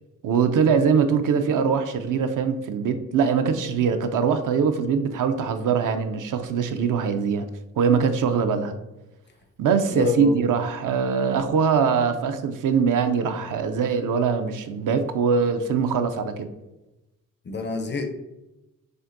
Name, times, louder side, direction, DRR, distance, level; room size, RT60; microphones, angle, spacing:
voice 1, 0.2-7.5 7.8-8.8 9.6-16.5, right 6 dB, 65° right, 8 dB, 0.5 m, -22 dB
voice 2, 9.9-10.4 17.4-18.1, left 5 dB, 35° left, 6 dB, 0.4 m, -27 dB
6.2 x 2.6 x 2.5 m, 0.97 s
cardioid pair, 115°, 34 cm